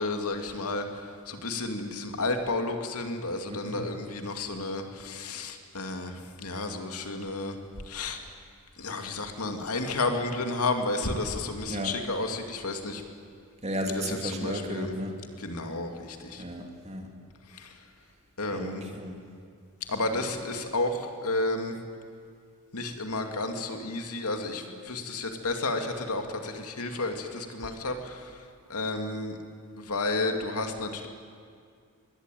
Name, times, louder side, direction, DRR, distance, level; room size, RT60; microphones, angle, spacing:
voice 1, 0.0-7.6 7.9-8.2 8.8-13.0 14.1-14.9 15.4-16.4 17.5-17.8 18.4-18.8 19.9-21.8 22.7-28.4 28.7-29.4 29.8-31.1, left 2 dB, 85° left, 5 dB, 2.5 m, -32 dB
voice 2, 3.5-3.8 11.7-12.0 13.6-15.2 16.4-17.1 18.5-19.2 20.1-20.2, equal, 30° right, 3 dB, 2.7 m, -34 dB
24.0 x 21.5 x 9.2 m, 2.2 s
head